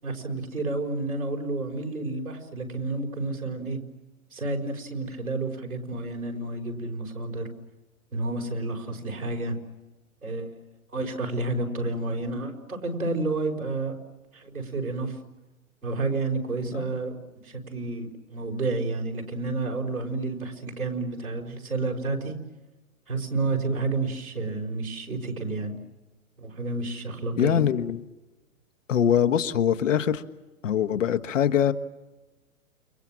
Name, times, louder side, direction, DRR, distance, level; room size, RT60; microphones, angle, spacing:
voice 1, 0.0-3.8 4.3-7.5 8.1-9.6 10.2-10.6 10.9-14.0 14.3-15.2 15.8-17.2 17.4-22.4 23.1-25.8 26.4-27.6, right 3 dB, 85° right, 1 dB, 5.3 m, -30 dB
voice 2, 27.4-28.0 28.9-30.2 30.6-31.7, left 9 dB, 65° left, 9 dB, 1.4 m, -23 dB
29.5 x 24.5 x 7.5 m, 1.1 s
figure-of-eight pair, 120°, 42 cm